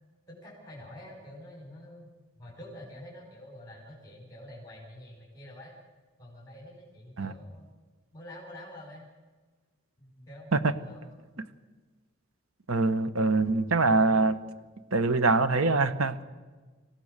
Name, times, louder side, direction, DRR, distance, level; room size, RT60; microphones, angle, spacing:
voice 1, 0.3-2.1 2.4-5.7 6.2-7.7 8.1-9.1 10.0-11.1, left 1 dB, 15° left, -4 dB, 5.3 m, -47 dB
voice 2, 12.7-14.4 14.9-16.2, right 3 dB, 80° right, 12 dB, 1.2 m, -24 dB
26.5 x 16.0 x 6.7 m, 1.3 s
head